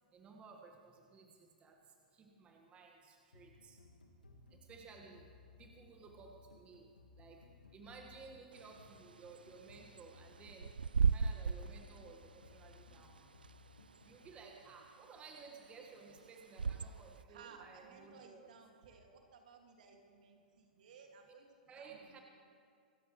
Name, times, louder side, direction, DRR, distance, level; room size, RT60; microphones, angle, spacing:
voice 1, 0.1-1.8 2.1-3.8 4.7-5.2 5.6-6.9 7.2-7.4 7.7-10.7 11.1-13.2 14.0-18.5 21.7-22.2, right 4 dB, 25° right, 1 dB, 1.6 m, -56 dB
sound 1, 3.3-14.3, left 3 dB, 80° left, 1.5 m, -62 dB
Bird / Wind, 8.5-17.2, right 5 dB, 80° right, 0.3 m, -38 dB
voice 2, 17.3-21.5 21.8-22.2, right 5 dB, 60° right, 3 dB, 2.1 m, -59 dB
26.5 x 13.5 x 3.2 m, 2.2 s
figure-of-eight pair, 105°, 5 cm